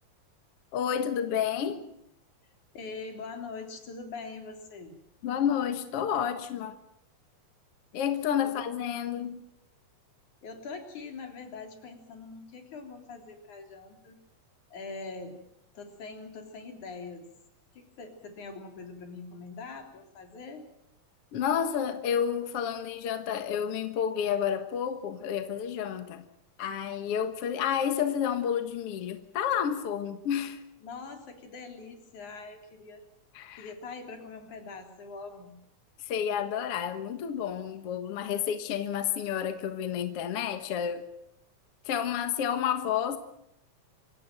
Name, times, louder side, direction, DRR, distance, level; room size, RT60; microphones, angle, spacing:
voice 1, 0.7-1.8 5.2-6.8 7.9-9.4 21.3-26.3 26.6-30.6 33.4-33.7 36.1-41.1 41.9-43.2, left 8 dB, 55° left, 9 dB, 2.2 m, -30 dB
voice 2, 2.7-5.0 8.4-8.5 10.4-14.2 14.7-15.4 15.7-17.3 17.7-20.7 30.8-33.0 33.6-35.6, left 4 dB, 80° left, 5 dB, 4.9 m, -43 dB
26.0 x 16.5 x 9.2 m, 0.76 s
omnidirectional pair, 3.4 m